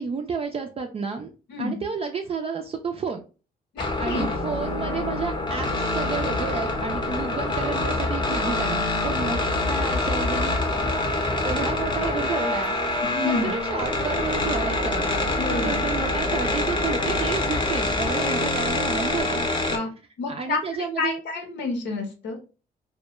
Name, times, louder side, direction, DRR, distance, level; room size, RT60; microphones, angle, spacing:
voice 1, 0.0-1.3 1.6-3.2 4.0-9.4 9.7-10.9 11.4-12.8 13.2-15.1 15.4-19.5 20.3-21.2, right 5 dB, 35° right, 4 dB, 0.3 m, -31 dB
voice 2, 3.7-4.2 13.1-13.5 15.4-15.8 19.0-19.1 19.7-19.9 20.2-20.6 21.0-22.4, left 3 dB, 75° left, 3 dB, 0.8 m, -29 dB
sound 1, 3.8-19.8, left 2 dB, 25° left, 0.6 m, -25 dB
2.1 x 2.1 x 2.9 m, 0.34 s
cardioid pair, 70°, 18 cm